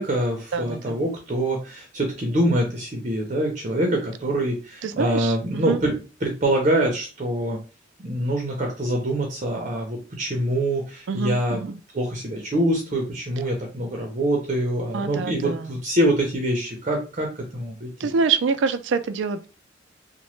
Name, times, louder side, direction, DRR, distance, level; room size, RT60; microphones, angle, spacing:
voice 1, 0.0-6.0 6.2-7.6 8.0-11.6 11.9-17.9, right 1 dB, 40° right, 1 dB, 0.6 m, -25 dB
voice 2, 0.5-1.0 4.8-5.8 11.1-11.8 14.9-15.7 18.0-19.5, right 5 dB, 85° right, 11 dB, 0.3 m, -26 dB
2.9 x 2.1 x 3.1 m, 0.33 s
head